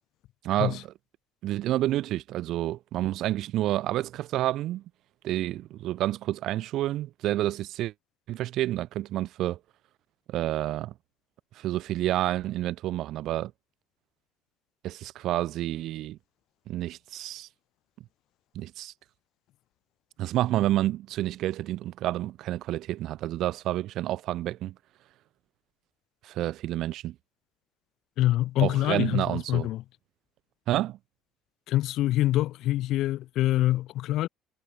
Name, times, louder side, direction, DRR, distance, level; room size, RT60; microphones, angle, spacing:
voice 1, 0.4-0.9 1.4-4.8 5.2-7.9 8.3-9.6 10.3-10.9 11.6-13.5 14.8-16.2 16.7-17.5 18.5-18.9 20.2-24.7 26.2-27.2 28.6-29.7 30.7-31.0, right 14 dB, 65° right, 0.5 m, -29 dB
voice 2, 28.2-29.8 31.7-34.3, left 15 dB, 65° left, 0.4 m, -25 dB
hypercardioid pair, 65°, 0 cm